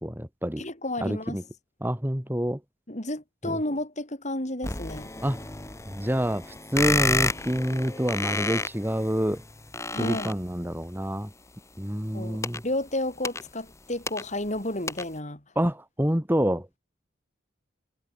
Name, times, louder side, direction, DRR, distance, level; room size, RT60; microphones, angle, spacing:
voice 1, 0.0-0.6 1.0-1.4 1.8-2.6 3.4-3.6 5.2-5.4 5.9-9.4 9.9-11.3 11.8-12.6 15.6-16.7, equal, 10° right, 2.7 m, -27 dB
voice 2, 0.6-1.4 2.9-5.1 9.9-10.4 12.1-15.4, left 1 dB, 40° left, 6.2 m, -32 dB
sound 1, 4.6-10.8 12.0-14.6 14.9-15.2, left 3 dB, 15° left, 1.3 m, -31 dB
head